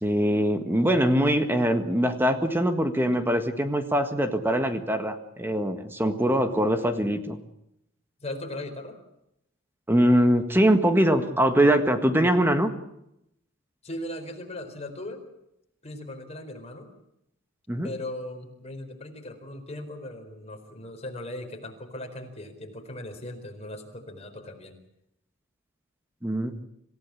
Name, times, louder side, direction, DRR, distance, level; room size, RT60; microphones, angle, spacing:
voice 1, 0.0-7.4 9.9-12.7 17.7-17.9 26.2-26.5, equal, 10° right, 7 dB, 1.7 m, -22 dB
voice 2, 8.2-9.0 13.8-15.2 15.8-16.9 17.8-24.8, left 1 dB, 30° left, 3 dB, 4.4 m, -38 dB
26.5 x 16.0 x 8.6 m, 0.80 s
head